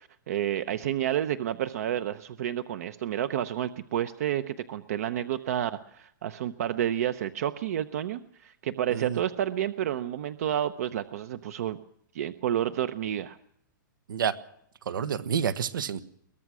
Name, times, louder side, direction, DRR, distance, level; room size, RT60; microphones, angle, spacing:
voice 1, 0.0-11.8 12.1-13.4, right 11 dB, 50° right, 0.8 m, -30 dB
voice 2, 8.9-9.2 14.1-14.3 14.9-16.0, right 8 dB, 85° right, 1.5 m, -28 dB
22.5 x 19.0 x 6.2 m
hypercardioid pair, 170°, 11 cm